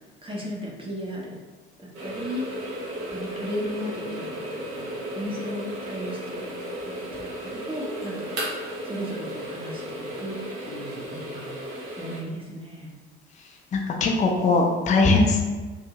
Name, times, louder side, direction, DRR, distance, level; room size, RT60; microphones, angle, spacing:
voice 1, 0.2-1.4 1.8-2.8 3.1-6.5 6.9-13.0, equal, 15° right, -3 dB, 0.8 m, -36 dB
sound 1, 1.9-12.2, right 1 dB, 60° right, 1.0 m, -34 dB
voice 2, 13.7-15.5, left 3 dB, 20° left, 1 dB, 0.5 m, -20 dB
3.5 x 2.6 x 2.9 m, 1.3 s
figure-of-eight pair, 50°, 33 cm